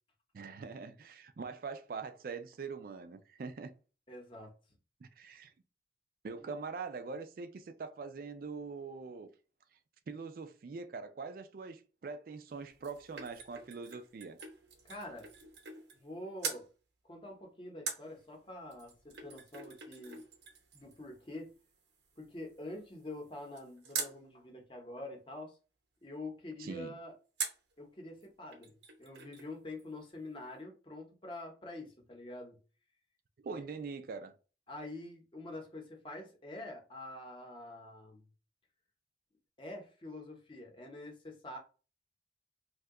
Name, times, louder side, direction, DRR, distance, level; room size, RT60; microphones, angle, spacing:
voice 1, 0.3-3.7 5.0-5.5 6.2-9.3 10.1-14.4 26.6-27.0 33.4-34.3, right 4 dB, 50° right, 0.3 m, -43 dB
voice 2, 4.1-4.5 6.4-6.6 14.8-15.3 15.9-16.7 17.1-18.9 19.2-20.2 20.7-21.5 22.2-25.6 26.0-27.1 27.8-32.6 33.5-33.6 34.7-38.3 39.6-41.6, left 2 dB, 30° left, 0.8 m, -46 dB
sound 1, 12.5-16.1 16.4-16.7 17.9-24.2 27.4-27.7 28.2-28.3 28.5-29.5 29.8-29.9, right 5 dB, 85° right, 0.8 m, -44 dB
2.8 x 2.2 x 3.5 m
head